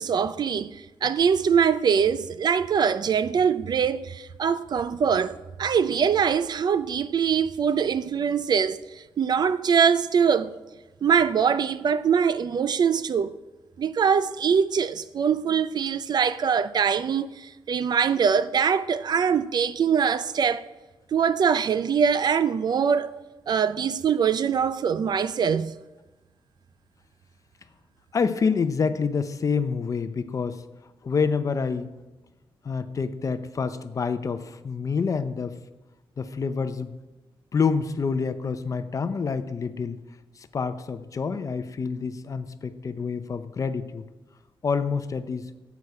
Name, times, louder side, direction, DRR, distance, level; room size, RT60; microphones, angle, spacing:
voice 1, 0.0-10.5 11.0-13.3 13.8-20.6 21.1-23.1 23.5-25.8, right 7 dB, 50° right, 0.4 m, -23 dB
voice 2, 28.1-30.6 31.0-31.9 32.6-35.6 36.2-37.0 37.5-40.0 40.4-44.1 44.6-45.5, left 5 dB, 35° left, 0.6 m, -27 dB
13.0 x 8.3 x 4.8 m
wide cardioid pair, 165°, 9 cm